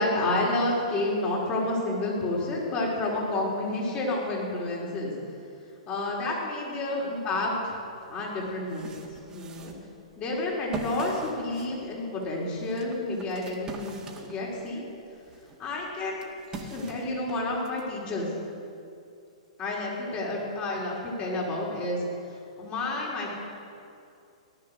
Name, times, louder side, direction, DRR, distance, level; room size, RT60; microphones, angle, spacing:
voice 1, 0.0-5.1 5.9-7.8 8.1-9.7 10.2-14.8 15.6-16.3 16.5-18.3 19.6-22.0 22.6-23.3, left 2 dB, 30° left, -3 dB, 4.6 m, -30 dB
sound 1, 8.4-14.8 15.2-17.8, right 3 dB, 20° right, 2.0 m, -42 dB
18.5 x 11.5 x 6.6 m, 2.5 s
hypercardioid pair, 120°, 4 cm